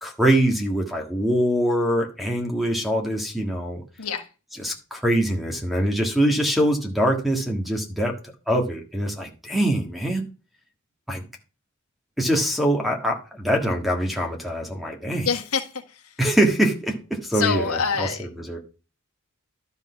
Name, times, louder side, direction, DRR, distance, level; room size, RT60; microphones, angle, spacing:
voice 1, 0.0-3.8 4.5-8.1 8.5-10.3 11.1-11.2 12.2-15.3 16.2-18.6, right 1 dB, ahead, 1.7 m, -23 dB
voice 2, 15.2-15.6 17.3-18.2, left 5 dB, 80° left, 1.5 m, -25 dB
12.0 x 4.1 x 5.7 m
head